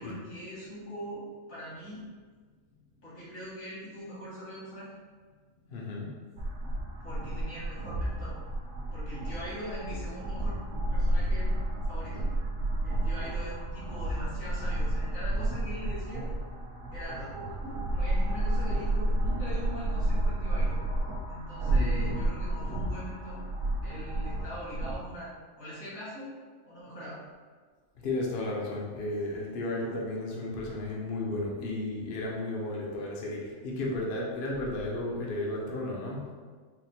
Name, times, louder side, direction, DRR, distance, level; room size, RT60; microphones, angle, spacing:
voice 1, 0.0-2.1 3.0-4.9 7.0-8.4 8.9-10.6 10.9-11.5 11.9-12.3 12.8-16.3 16.9-17.3 17.6-20.8 21.3-23.4 23.8-26.3 26.7-27.2, equal, 75° left, -9 dB, 2.0 m, -42 dB
voice 2, 5.7-6.2 21.7-22.3 28.0-36.3, left 2 dB, 55° left, -3 dB, 0.7 m, -33 dB
sound 1, 6.4-24.9, right 1 dB, 60° right, 1.0 m, -31 dB
4.2 x 2.0 x 4.1 m, 1.5 s
omnidirectional pair, 1.4 m